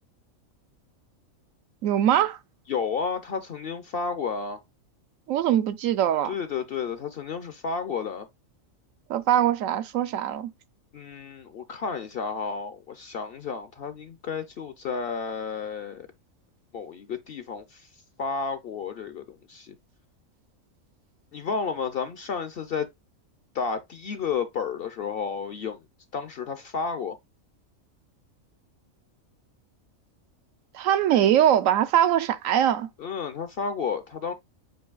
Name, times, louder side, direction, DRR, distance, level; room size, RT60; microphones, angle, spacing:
voice 1, 1.8-2.4 5.3-6.3 9.1-10.5 30.7-32.9, right 10 dB, 75° right, 1.0 m, -22 dB
voice 2, 2.7-4.6 6.3-8.3 10.9-16.1 16.7-17.9 18.2-19.7 21.3-22.9 23.5-25.8 26.1-27.2 33.0-34.3, left 5 dB, 55° left, 0.7 m, -31 dB
7.6 x 2.7 x 2.3 m
omnidirectional pair, 1.4 m